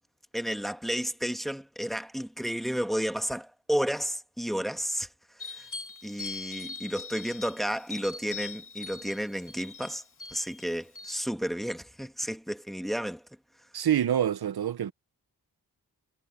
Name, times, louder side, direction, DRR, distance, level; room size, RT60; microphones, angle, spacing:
voice 1, 0.3-5.1 5.6-5.7 6.0-10.0 10.3-13.2, equal, ahead, 1.3 m, -32 dB
sound 1, 5.4-11.2, left 4 dB, 55° left, 2.8 m, -42 dB
voice 2, 13.7-14.9, right 10 dB, 80° right, 0.7 m, -26 dB
wide cardioid pair, 105°, 37 cm